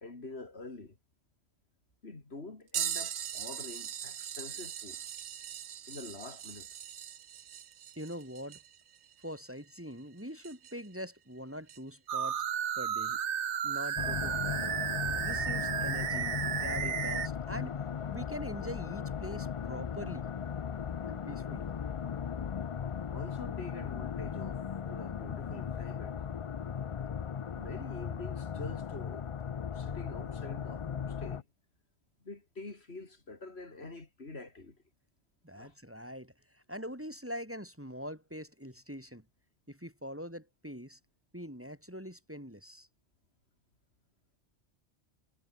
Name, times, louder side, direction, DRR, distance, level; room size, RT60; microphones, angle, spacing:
voice 1, 0.0-1.0 2.0-5.0 5.9-6.7 21.5-21.6 23.1-26.1 27.5-29.3 29.7-31.5 32.2-34.8 35.5-35.8, left 3 dB, 65° left, 3.3 m, -46 dB
sound 1, 2.7-10.9 11.7-11.8 14.1-14.2 15.2-15.4 16.4-16.5, right 10 dB, 55° right, 0.6 m, -41 dB
voice 2, 8.0-8.6 9.2-12.4 12.8-13.2 13.6-14.7 15.2-17.8 18.1-20.3 21.1-21.7 35.4-39.2 39.7-41.0 41.3-42.9, equal, 10° right, 3.0 m, -43 dB
sound 2, 12.1-17.3, right 9 dB, 85° right, 1.2 m, -33 dB
sound 3, 14.0-31.4, left 7 dB, 50° left, 0.4 m, -37 dB
omnidirectional pair, 1.1 m